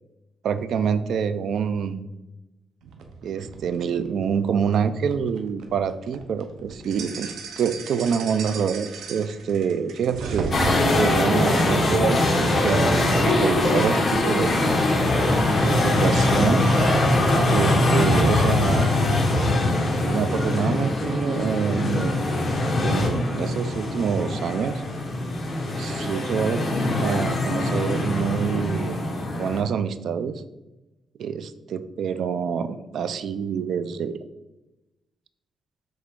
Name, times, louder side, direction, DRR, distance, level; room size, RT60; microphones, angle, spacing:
voice 1, 0.4-2.0 3.2-10.6 11.0-14.5 15.6-16.7 17.5-18.9 20.1-22.3 22.8-24.8 25.8-26.6 27.0-29.0 29.4-30.4 31.2-34.2, right 7 dB, 70° right, 12 dB, 0.4 m, -26 dB
sound 1, 2.8-11.2 11.7-16.4 16.8-18.4, right 4 dB, 90° right, 0.8 m, -37 dB
sound 2, 10.5-29.6, left 2 dB, 35° left, 1.2 m, -22 dB
sound 3, 12.0-18.3, right 2 dB, 35° right, 0.7 m, -38 dB
7.5 x 3.5 x 3.7 m, 1.0 s
cardioid pair, 95°, 0 cm